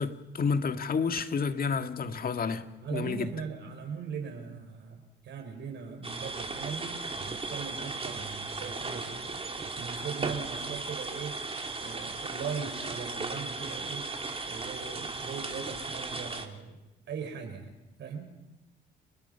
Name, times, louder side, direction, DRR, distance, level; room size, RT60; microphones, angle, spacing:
voice 1, 0.0-2.7 2.9-3.3, left 5 dB, 50° left, 1.9 m, -30 dB
voice 2, 2.8-11.4 11.8-14.1 14.5-16.8 17.1-17.7 18.0-18.3, right 6 dB, 70° right, 6.1 m, -39 dB
sound 1, 6.0-16.5, right 3 dB, 30° right, 3.1 m, -36 dB
30.0 x 20.0 x 5.8 m
supercardioid pair, 65°, 19 cm